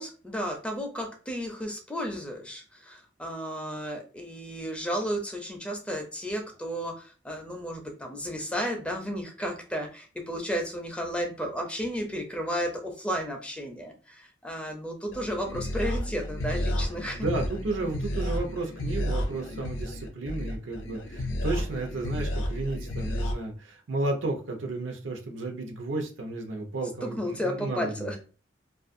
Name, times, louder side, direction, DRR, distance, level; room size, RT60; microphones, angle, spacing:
voice 1, 0.0-17.3 27.0-28.2, equal, 5° left, 3 dB, 0.4 m, -33 dB
sound 1, 15.1-23.3, left 1 dB, 85° left, 0.5 m, -31 dB
voice 2, 17.1-28.1, right 2 dB, 85° right, 2 dB, 0.7 m, -33 dB
2.4 x 2.4 x 2.5 m, 0.36 s
head